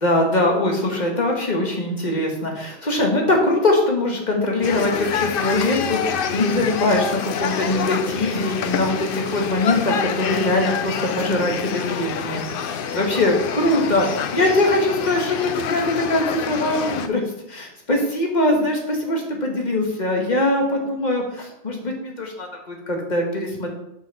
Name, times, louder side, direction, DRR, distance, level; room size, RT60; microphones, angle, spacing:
voice 1, 0.0-15.8 16.1-17.2 17.5-23.7, left 1 dB, 40° left, 1 dB, 1.5 m, -22 dB
sound 1, 4.6-17.1, left 7 dB, 60° left, 0.7 m, -27 dB
6.4 x 4.7 x 5.6 m, 0.81 s
omnidirectional pair, 1.2 m